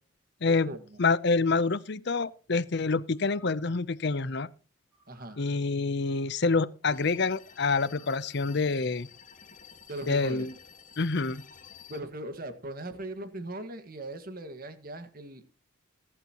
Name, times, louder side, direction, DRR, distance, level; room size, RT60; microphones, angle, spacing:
voice 1, 0.5-1.0 5.1-5.4 9.9-10.5 11.9-15.5, right 1 dB, 45° right, 1.8 m, -39 dB
voice 2, 1.0-4.5 5.4-9.1 10.1-10.5 11.0-11.4, left 4 dB, 55° left, 0.7 m, -27 dB
sound 1, 3.1-3.9 4.9-5.6 7.7-8.4 8.8-8.9, left 1 dB, 5° right, 4.6 m, -60 dB
sound 2, 6.9-12.0, left 7 dB, 40° left, 1.9 m, -52 dB
21.5 x 11.0 x 3.0 m
head